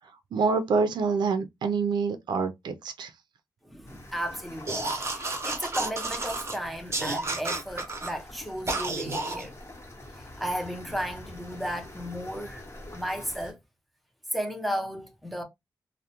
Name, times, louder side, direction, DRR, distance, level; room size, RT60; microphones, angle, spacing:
voice 1, 0.3-3.1, right 4 dB, 80° right, 0.4 m, -26 dB
voice 2, 3.6-9.5 10.2-12.7 12.9-13.6 14.3-15.4, equal, ahead, 0.7 m, -34 dB
sound 1, 3.9-13.5, left 1 dB, 35° left, 1.0 m, -46 dB
sound 2, 4.7-6.6 6.9-8.1 8.7-9.5, right 2 dB, 35° right, 0.7 m, -31 dB
2.3 x 2.1 x 2.9 m
cardioid pair, 65°, 7 cm